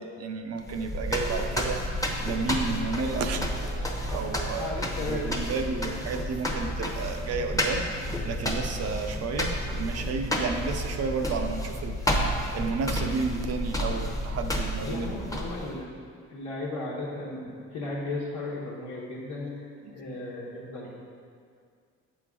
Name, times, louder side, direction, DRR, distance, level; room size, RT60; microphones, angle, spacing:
voice 1, 0.0-1.8 2.2-4.8 5.1-7.8 8.2-12.2 12.5-15.4 19.8-19.9, right 4 dB, 55° right, 5 dB, 0.6 m, -32 dB
sound 1, 0.6-15.8, equal, 10° left, 0.8 m, -31 dB
voice 2, 4.6-5.6 14.8-15.9 16.3-19.7 19.9-20.9, left 2 dB, 80° left, -8 dB, 1.2 m, -35 dB
7.4 x 5.0 x 3.7 m, 2.2 s
cardioid pair, 90°, 30 cm